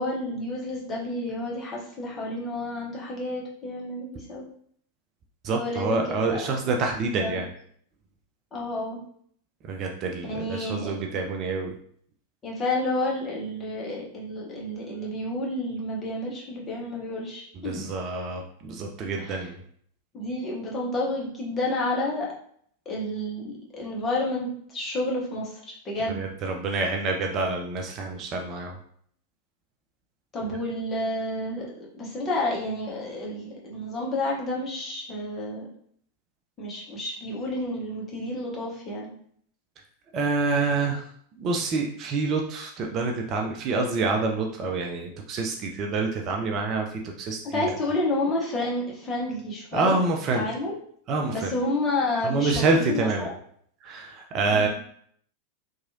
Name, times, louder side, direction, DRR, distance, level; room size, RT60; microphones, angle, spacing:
voice 1, 0.0-4.4 5.5-6.0 6.3-6.6 7.2-7.4 8.5-9.0 10.2-10.9 12.4-17.8 19.2-19.5 20.1-22.3 22.9-26.3 30.3-35.7 36.6-39.1 47.5-50.0 50.3-50.7 51.3-53.3 54.5-54.7, left 1 dB, 25° left, -3 dB, 0.8 m, -30 dB
voice 2, 5.4-7.5 9.6-11.7 17.5-19.6 26.1-28.8 40.1-41.1 41.4-47.6 49.7-50.5 51.1-51.5 52.2-53.3 53.8-54.7, right 3 dB, 35° right, 2 dB, 0.4 m, -27 dB
2.9 x 2.3 x 2.6 m, 0.62 s
figure-of-eight pair, 90°, 0 cm